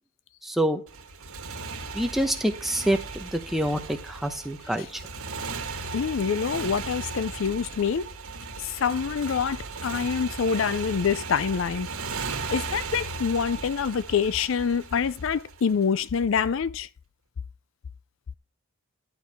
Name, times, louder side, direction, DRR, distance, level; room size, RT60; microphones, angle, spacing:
voice 1, 0.4-0.8 1.9-5.0, right 1 dB, ahead, 0.9 m, -26 dB
Motorcycle, 0.9-16.0, right 4 dB, 90° right, 1.6 m, -36 dB
voice 2, 5.9-8.1 8.6-11.9 12.5-16.9, left 6 dB, 60° left, 0.4 m, -26 dB
11.5 x 4.7 x 5.7 m
head